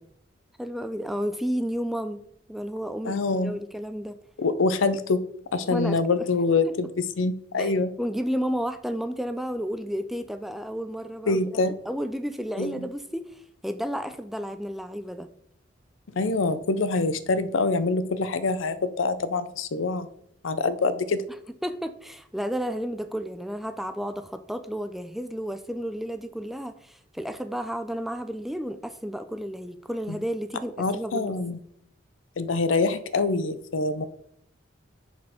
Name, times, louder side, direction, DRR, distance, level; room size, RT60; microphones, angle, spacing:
voice 1, 0.6-2.2 2.5-4.2 5.7-6.1 6.7-6.8 7.6-11.6 11.9-15.3 21.6-31.4, equal, ahead, 9 dB, 0.3 m, -32 dB
voice 2, 3.0-3.5 4.4-5.2 5.5-7.9 11.3-11.8 12.6-12.9 16.2-20.1 20.4-21.2 30.8-31.6 32.4-34.0, left 3 dB, 80° left, 13 dB, 0.6 m, -25 dB
7.0 x 4.3 x 4.8 m, 0.70 s
head